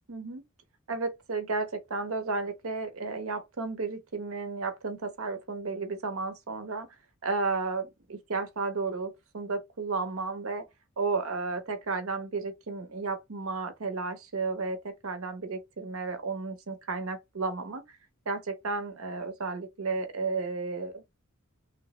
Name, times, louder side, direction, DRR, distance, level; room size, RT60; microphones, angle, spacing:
voice 1, 0.1-0.4 0.9-6.9 7.2-10.7 11.0-17.8 18.3-21.0, right 4 dB, 80° right, 0.8 m, -33 dB
3.2 x 2.0 x 2.9 m
head